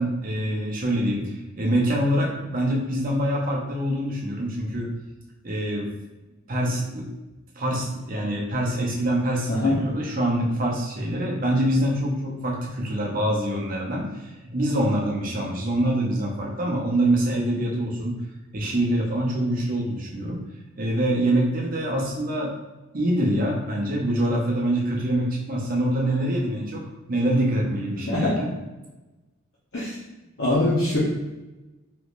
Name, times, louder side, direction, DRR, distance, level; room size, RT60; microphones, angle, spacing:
voice 1, 0.0-4.9 5.4-5.9 6.5-7.1 7.6-18.2 18.5-20.4 20.8-22.5 22.9-26.8 27.1-28.5, right 1 dB, 40° right, -2 dB, 0.6 m, -25 dB
voice 2, 9.5-9.8 28.1-28.4 29.7-30.0 30.4-31.0, left 2 dB, 50° left, -9 dB, 0.7 m, -22 dB
3.5 x 3.0 x 2.4 m, 1.1 s
head